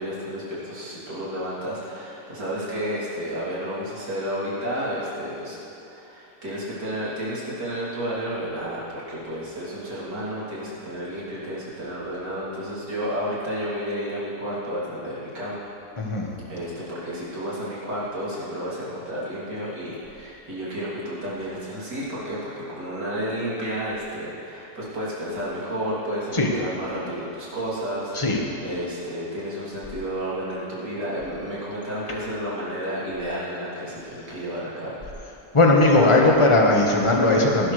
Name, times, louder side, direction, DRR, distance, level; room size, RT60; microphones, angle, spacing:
voice 1, 0.0-5.6 5.9-15.6 16.5-35.0, equal, 85° right, -9 dB, 3.8 m, -31 dB
voice 2, 16.0-16.3 26.3-26.5 28.1-28.4 35.5-37.7, left 2 dB, 20° left, -1 dB, 1.3 m, -18 dB
18.5 x 12.0 x 3.3 m, 2.9 s
omnidirectional pair, 1.8 m